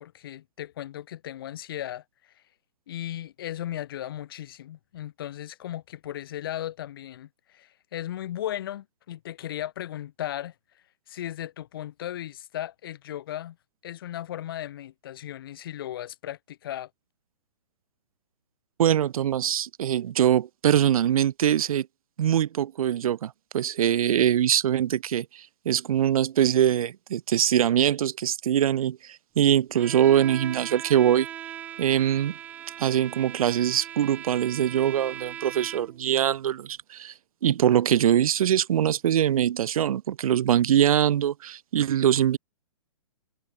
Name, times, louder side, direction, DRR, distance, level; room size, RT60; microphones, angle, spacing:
voice 1, 0.0-2.0 2.9-10.5 11.1-13.6 13.8-16.9, left 12 dB, 40° left, 1.3 m, -36 dB
voice 2, 18.8-21.9 22.2-31.3 31.8-32.4 32.8-37.1 37.4-42.4, right 10 dB, 75° right, 0.4 m, -23 dB
Bowed string instrument, 29.8-36.1, right 11 dB, 10° right, 0.5 m, -39 dB
hypercardioid pair, 170°, 18 cm